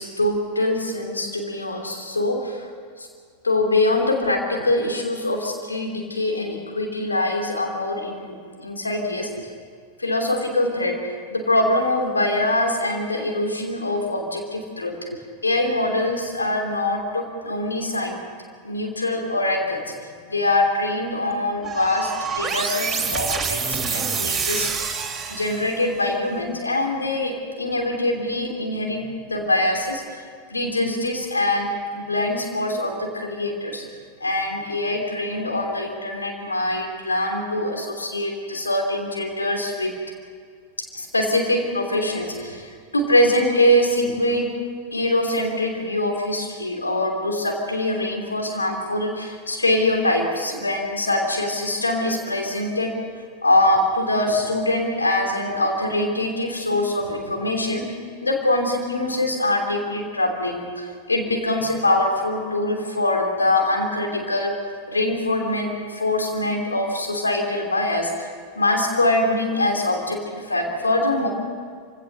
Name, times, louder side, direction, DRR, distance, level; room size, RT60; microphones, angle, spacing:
voice 1, 0.0-2.7 3.4-9.5 10.0-11.0 11.3-18.2 18.6-19.8 20.3-24.7 25.3-30.2 30.5-33.8 34.2-40.0 40.9-44.5 44.9-52.9 53.4-57.9 58.2-64.6 64.9-68.3 68.6-71.3, left 1 dB, 80° left, 2 dB, 3.0 m, -23 dB
sound 1, 21.6-25.9, right 5 dB, 15° right, 3.1 m, -27 dB
26.5 x 17.0 x 6.8 m, 2.1 s
figure-of-eight pair, 90°, 0 cm